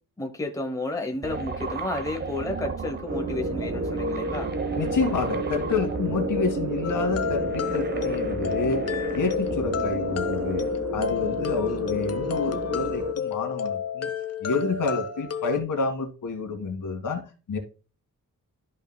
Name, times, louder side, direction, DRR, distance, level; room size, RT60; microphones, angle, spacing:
voice 1, 0.2-4.5, left 2 dB, 10° left, 0.9 m, -31 dB
sound 1, 1.2-10.7, right 5 dB, 30° right, 0.8 m, -35 dB
sound 2, 3.1-13.1, right 1 dB, 55° right, 1.3 m, -31 dB
voice 2, 4.8-8.9 9.1-10.7 10.9-14.1 14.4-17.2 17.5-17.6, left 4 dB, 70° left, 1.9 m, -28 dB
sound 3, 6.8-15.6, left 8 dB, 50° left, 0.7 m, -31 dB
12.5 x 5.3 x 2.2 m
wide cardioid pair, 155°, 33 cm